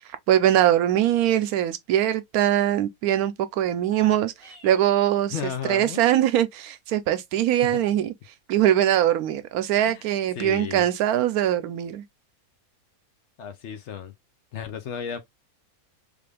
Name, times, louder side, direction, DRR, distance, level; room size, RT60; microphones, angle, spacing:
voice 1, 0.3-4.3 4.6-8.1 8.5-12.0, right 11 dB, 85° right, 1.1 m, -22 dB
sound 1, 3.8-5.0, right 1 dB, 80° left, 2.2 m, -50 dB
voice 2, 5.3-6.0 7.6-7.8 9.9-10.1 10.3-10.9 13.4-14.1 14.5-15.2, left 8 dB, 60° left, 0.8 m, -33 dB
3.5 x 2.5 x 3.2 m
omnidirectional pair, 1.5 m